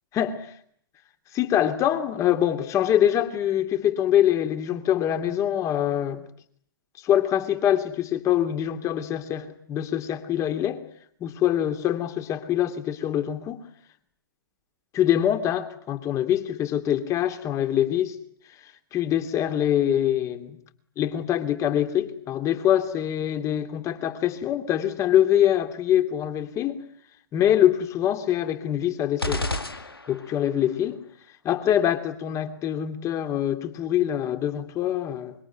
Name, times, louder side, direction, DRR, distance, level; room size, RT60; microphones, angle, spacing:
voice 1, 0.1-0.5 1.3-6.2 7.0-10.8 11.2-13.6 14.9-18.2 18.9-20.6 21.0-26.8 27.3-29.5 30.1-31.0 31.4-35.3, left 11 dB, 25° left, 2.8 m, -24 dB
sound 1, 29.2-30.5, left 2 dB, 90° left, 2.3 m, -30 dB
25.5 x 24.0 x 9.4 m
figure-of-eight pair, 110°, 12 cm